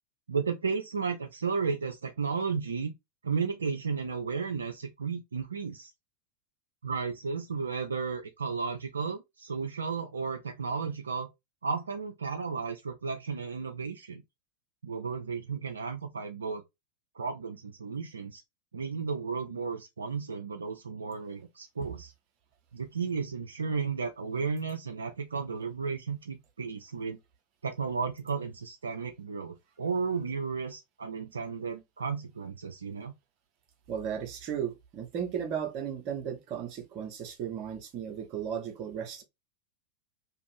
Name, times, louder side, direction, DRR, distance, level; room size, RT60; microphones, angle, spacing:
voice 1, 0.3-2.9 3.2-5.9 6.8-11.3 11.6-14.2 14.8-16.6 17.1-18.4 18.7-22.1 22.7-27.2 27.6-33.1, right 5 dB, 70° right, 0.3 m, -33 dB
voice 2, 33.9-39.2, right 8 dB, 40° right, 0.8 m, -35 dB
2.7 x 2.4 x 3.1 m
figure-of-eight pair, 90°, 0 cm